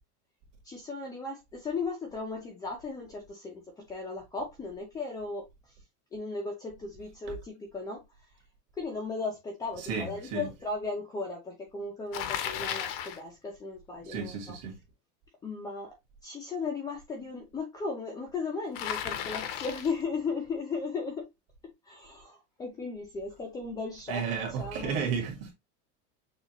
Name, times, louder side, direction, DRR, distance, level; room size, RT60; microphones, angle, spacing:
voice 1, 0.6-5.4 6.1-8.0 8.7-14.6 15.4-15.9 16.2-21.3 21.8-25.0, left 4 dB, 10° left, 0.5 m, -36 dB
voice 2, 9.9-10.5 14.0-14.7 24.1-25.5, right 6 dB, 40° right, 1.9 m, -33 dB
Bicycle, 12.1-13.2 18.7-20.0, left 10 dB, 50° left, 0.8 m, -34 dB
6.5 x 2.5 x 2.9 m
supercardioid pair, 170°, 36 cm